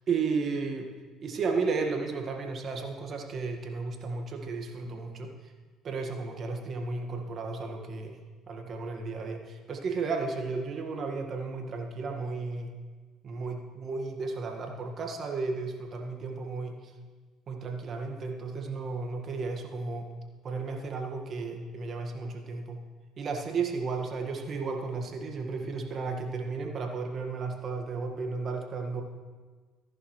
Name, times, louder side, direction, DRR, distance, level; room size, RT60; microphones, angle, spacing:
voice 1, 0.1-0.9 1.2-5.5 5.8-8.2 8.5-12.7 13.2-16.9 17.5-20.1 20.4-22.8 23.2-29.0, right 4 dB, 50° right, 3 dB, 1.6 m, -33 dB
14.0 x 11.0 x 3.2 m, 1.4 s
supercardioid pair, 75°, 0 cm